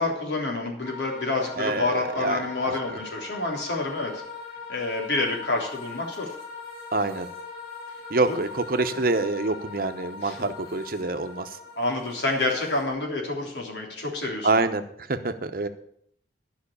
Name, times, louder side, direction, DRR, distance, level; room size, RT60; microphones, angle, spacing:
voice 1, 0.0-4.2 4.7-6.3 8.3-8.4 8.9-9.1 10.2-10.5 11.7-14.5, left 2 dB, 80° left, 0 dB, 3.4 m, -28 dB
sound 1, 0.8-12.9, left 4 dB, 55° left, 4.9 m, -41 dB
voice 2, 1.6-1.9 2.2-2.4 6.9-7.3 8.1-11.5 14.4-14.8 15.1-15.7, right 3 dB, 55° right, 8 dB, 0.9 m, -26 dB
12.0 x 5.8 x 8.6 m, 0.67 s
head